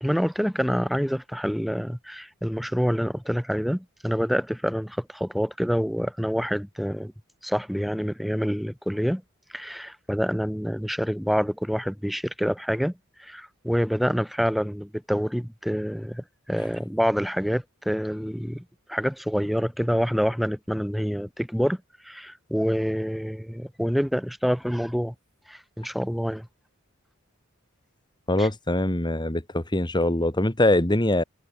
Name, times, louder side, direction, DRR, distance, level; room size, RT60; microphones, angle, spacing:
voice 1, 0.0-7.1 7.4-9.2 9.5-12.9 13.2-21.8 22.0-25.1 25.5-26.5 28.4-28.5, equal, ahead, 2.0 m, -27 dB
voice 2, 28.3-31.2, left 1 dB, 20° left, 1.8 m, -23 dB
head